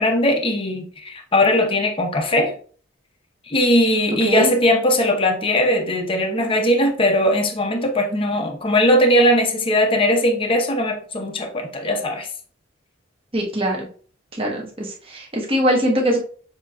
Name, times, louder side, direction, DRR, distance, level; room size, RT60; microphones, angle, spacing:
voice 1, 0.0-2.5 3.5-12.3, left 1 dB, 25° left, 0.7 m, -19 dB
voice 2, 13.3-13.9 14.4-16.2, equal, 30° right, 1.2 m, -22 dB
7.0 x 2.9 x 2.5 m
head